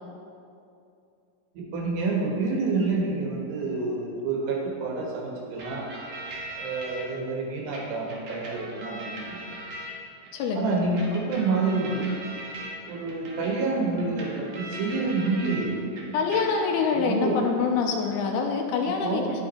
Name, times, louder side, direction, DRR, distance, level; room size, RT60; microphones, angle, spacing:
voice 1, 1.6-5.9 6.6-9.4 10.6-12.1 12.9-16.0 16.9-17.4 18.9-19.3, right 3 dB, 85° right, -1 dB, 3.5 m, -28 dB
sound 1, 5.6-7.0 7.7-10.3 11.0-15.6 15.9-16.9, right 1 dB, 65° right, 1.6 m, -40 dB
voice 2, 10.3-10.8 16.1-19.2, left 5 dB, 80° left, 2 dB, 2.5 m, -25 dB
10.5 x 6.7 x 4.2 m, 2.5 s
omnidirectional pair, 4.7 m